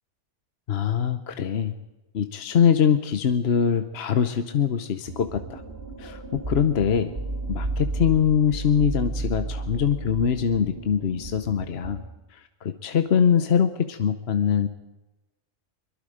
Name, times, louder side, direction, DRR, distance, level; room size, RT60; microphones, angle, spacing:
voice 1, 0.7-1.7 2.1-5.6 6.0-7.1 7.5-12.0 12.3-14.7, left 7 dB, 60° left, 9 dB, 1.1 m, -23 dB
sound 1, 5.1-12.0, right 2 dB, 50° right, 2.7 m, -33 dB
23.5 x 22.5 x 5.1 m, 1.0 s
omnidirectional pair, 1.2 m